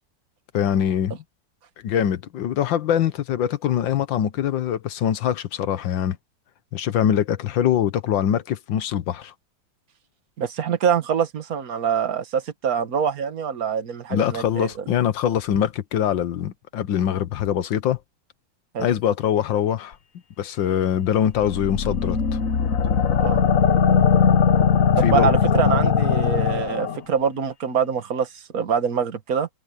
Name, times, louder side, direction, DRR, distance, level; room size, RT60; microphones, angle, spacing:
voice 1, 0.5-1.2 1.8-6.2 6.7-9.3 14.1-18.0 18.8-20.0 20.4-22.4 25.0-25.3, left 9 dB, 75° left, 1.7 m, -23 dB
voice 2, 10.4-14.7 18.7-18.9 23.2-23.4 25.0-29.5, right 7 dB, 50° right, 1.9 m, -24 dB
sound 1, 21.3-27.0, left 7 dB, 50° left, 1.3 m, -19 dB
omnidirectional pair, 2.1 m